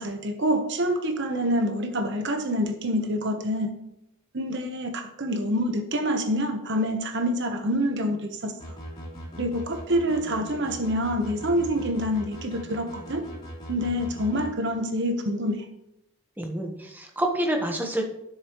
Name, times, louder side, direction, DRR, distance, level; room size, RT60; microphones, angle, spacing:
voice 1, 0.0-3.7 4.3-8.8 9.4-13.2 13.7-15.6, equal, 55° right, 6 dB, 1.1 m, -26 dB
sound 1, 8.6-14.5, equal, 20° left, 3.6 m, -40 dB
voice 2, 16.4-18.0, right 1 dB, 10° right, 2 dB, 1.2 m, -27 dB
11.0 x 6.8 x 3.1 m, 0.82 s
head